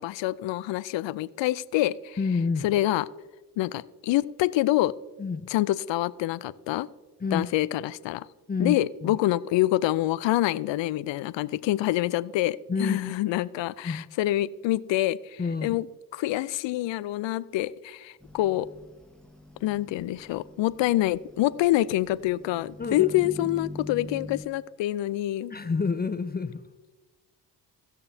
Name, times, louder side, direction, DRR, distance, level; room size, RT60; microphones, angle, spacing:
voice 1, 0.0-2.2 2.6-3.1 3.6-4.9 5.5-6.9 7.3-8.3 8.6-15.9 16.1-18.7 19.6-25.5, left 15 dB, 65° left, 18 dB, 0.5 m, -26 dB
voice 2, 2.2-2.7 5.2-5.5 7.2-7.4 8.5-9.2 12.7-13.2 13.8-14.0 15.4-15.8 22.8-23.5 25.5-26.6, left 4 dB, 20° left, 11 dB, 0.6 m, -29 dB
sound 1, 18.2-24.4, left 2 dB, ahead, 1.1 m, -44 dB
18.0 x 6.7 x 2.7 m, 1.3 s
hypercardioid pair, 50°, 50 cm